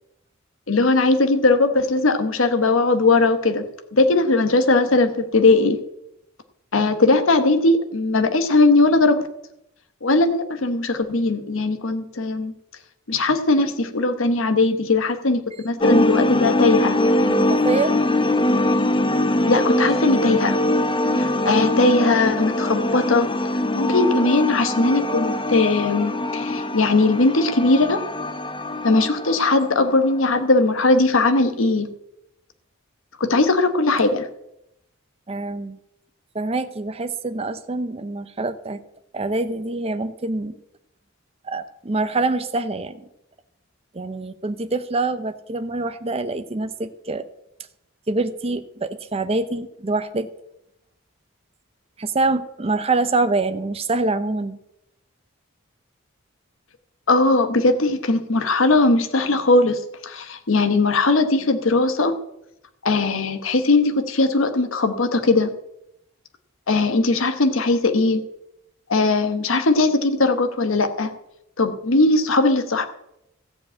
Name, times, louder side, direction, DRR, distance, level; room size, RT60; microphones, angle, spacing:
voice 1, 0.7-5.8 6.7-9.2 10.0-12.5 13.1-17.0 19.5-20.6 21.2-23.3 23.7-28.0 28.8-31.9 33.2-34.3 57.1-62.2 62.8-65.5 66.7-68.2 68.9-71.1 71.6-72.9, left 3 dB, 70° left, 9 dB, 1.0 m, -19 dB
sound 1, 15.8-30.4, left 1 dB, 25° left, 0.6 m, -22 dB
voice 2, 17.3-17.9 35.3-35.8 36.3-38.8 39.1-40.6 41.4-43.1 43.9-47.3 48.1-50.3 52.0-54.6, right 3 dB, 30° right, 10 dB, 0.6 m, -25 dB
14.0 x 5.1 x 8.5 m, 0.83 s
head